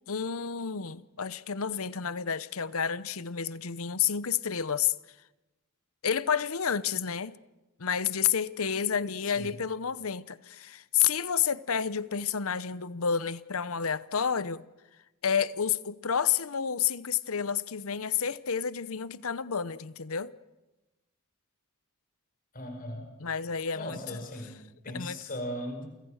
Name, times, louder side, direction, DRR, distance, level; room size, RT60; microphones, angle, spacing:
voice 1, 0.1-4.9 6.0-7.4 7.8-14.6 15.2-20.3 23.2-24.0 24.9-25.2, left 7 dB, 75° left, 0.9 m, -30 dB
voice 2, 9.2-9.6 22.5-23.1 23.7-25.9, left 1 dB, 40° left, 5.2 m, -38 dB
29.0 x 24.5 x 6.5 m
head